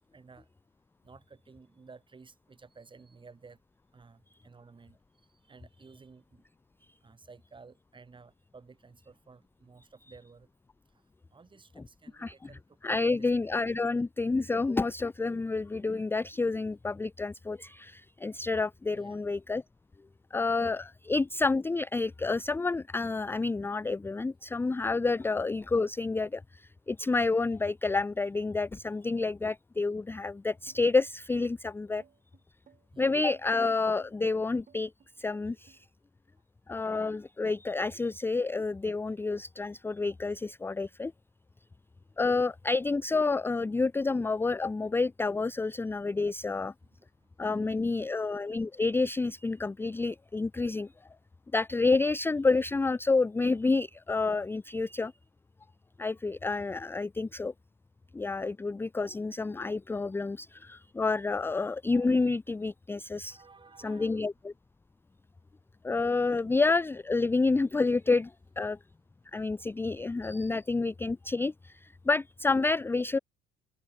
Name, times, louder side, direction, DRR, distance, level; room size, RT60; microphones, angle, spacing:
voice 1, 0.1-0.5 1.0-3.6 3.9-5.0 5.3-6.4 7.0-10.5 11.3-13.3 18.9-19.2 32.9-33.2 47.0-48.2 60.2-60.3 63.3-64.2, right 4 dB, 25° right, 6.5 m, -55 dB
voice 2, 12.8-19.6 20.3-32.0 33.0-34.9 35.2-35.9 36.7-41.1 42.2-46.7 47.4-50.9 51.5-55.1 56.0-57.5 58.1-63.4 63.8-64.5 65.8-68.8 69.3-73.2, left 3 dB, 10° left, 0.5 m, -29 dB
sound 1, 30.7-35.8, right 7 dB, 40° right, 7.7 m, -61 dB
open air
supercardioid pair, 85°, 20 cm